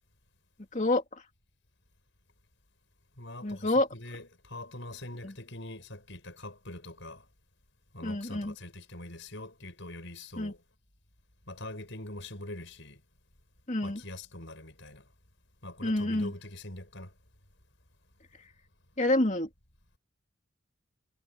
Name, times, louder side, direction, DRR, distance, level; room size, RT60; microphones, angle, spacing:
voice 1, 0.7-1.0 3.4-3.9 5.2-5.3 8.0-8.5 10.4-10.5 13.7-14.0 15.8-16.3 19.0-19.5, left 1 dB, 35° left, 2.6 m, -27 dB
voice 2, 3.2-7.3 7.9-10.6 11.5-13.0 13.8-15.1 15.6-17.1, left 1 dB, 60° left, 7.4 m, -43 dB
head